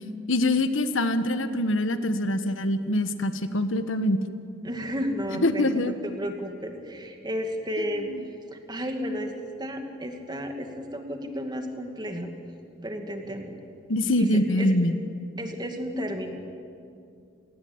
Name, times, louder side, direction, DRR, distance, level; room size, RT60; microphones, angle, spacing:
voice 1, 0.3-4.2 5.3-6.0 7.8-8.2 13.9-15.0, left 1 dB, 70° left, 10 dB, 1.3 m, -24 dB
voice 2, 4.6-8.1 8.5-9.3 9.6-12.3 12.8-13.6 14.0-14.7 15.4-16.4, equal, 20° right, 4 dB, 2.4 m, -33 dB
28.5 x 19.0 x 8.7 m, 2.5 s
head